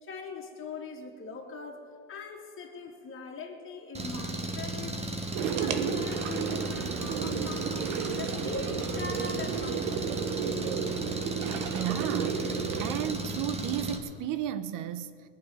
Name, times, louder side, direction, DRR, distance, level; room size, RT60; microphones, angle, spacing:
voice 1, 0.0-5.0 5.4-10.1, left 4 dB, 30° left, 3.1 m, -41 dB
Engine, 3.9-14.0, right 2 dB, 15° right, 1.7 m, -35 dB
sound 1, 5.3-13.1, right 7 dB, 70° right, 1.4 m, -33 dB
voice 2, 11.7-15.3, right 10 dB, 55° right, 1.0 m, -34 dB
19.5 x 6.9 x 9.5 m
supercardioid pair, 100°, 39 cm